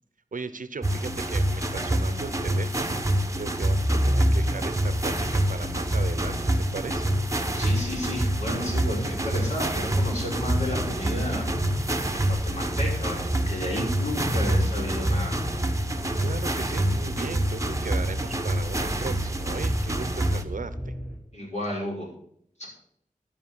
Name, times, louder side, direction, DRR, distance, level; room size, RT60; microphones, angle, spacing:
voice 1, 0.3-7.1 16.2-20.9, right 4 dB, 70° right, 12 dB, 0.8 m, -37 dB
sound 1, 0.8-20.4, right 1 dB, 25° right, 1.1 m, -27 dB
sound 2, 3.8-21.2, equal, 10° left, 4.5 m, -32 dB
voice 2, 7.5-11.4 12.1-15.4 21.3-22.1 22.6-22.7, left 1 dB, 55° left, -3 dB, 5.7 m, -32 dB
12.5 x 5.7 x 7.2 m, 0.68 s
wide cardioid pair, 60°, 14 cm